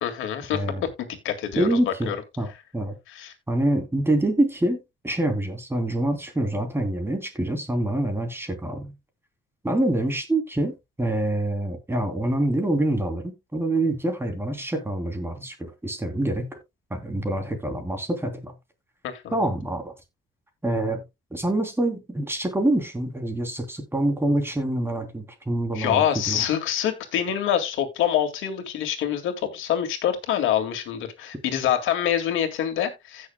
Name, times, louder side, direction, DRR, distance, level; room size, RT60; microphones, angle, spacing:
voice 1, 0.0-0.6 1.0-2.2 3.1-3.3 19.0-19.5 25.7-33.3, left 10 dB, 90° left, 2.1 m, -26 dB
voice 2, 0.5-0.8 1.6-2.9 3.5-4.8 5.0-8.9 9.6-16.6 16.9-18.5 19.3-19.9 20.6-21.0 21.3-26.4, right 1 dB, 10° right, 3.1 m, -26 dB
16.0 x 6.5 x 2.2 m
cardioid pair, 90°, 20 cm